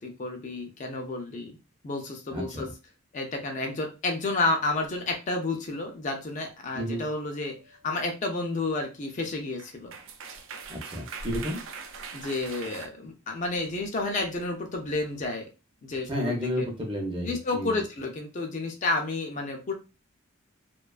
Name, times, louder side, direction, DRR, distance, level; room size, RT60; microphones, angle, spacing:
voice 1, 0.0-1.6 1.8-2.7 3.1-9.9 12.1-15.4 15.8-16.6 17.2-19.7, left 2 dB, 35° left, 3 dB, 0.4 m, -31 dB
voice 2, 2.3-2.7 6.7-7.0 10.7-11.6 16.1-17.8, equal, 25° right, 2 dB, 0.6 m, -31 dB
sound 1, 7.6-7.8 9.3-9.4 9.6-12.9, right 4 dB, 70° right, 0.4 m, -41 dB
2.3 x 2.2 x 2.3 m, 0.29 s
head